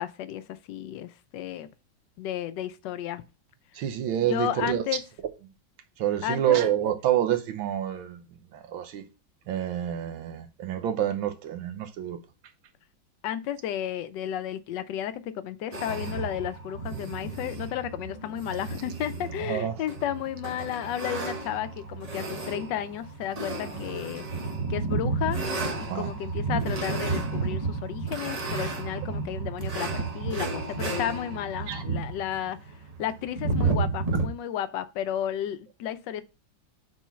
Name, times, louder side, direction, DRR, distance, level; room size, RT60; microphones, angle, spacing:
voice 1, 0.0-1.7 2.2-3.2 4.2-5.0 6.2-6.6 13.2-24.2 24.7-25.4 25.8-32.6 33.0-36.2, left 11 dB, 70° left, 1.1 m, -33 dB
voice 2, 3.7-5.0 6.0-8.2 8.5-9.0 9.5-12.2 19.4-19.8 25.9-26.1 31.7-31.8, right 11 dB, 80° right, 1.6 m, -28 dB
sound 1, 15.7-34.3, right 3 dB, 35° right, 0.6 m, -32 dB
6.1 x 3.9 x 5.7 m
omnidirectional pair, 2.2 m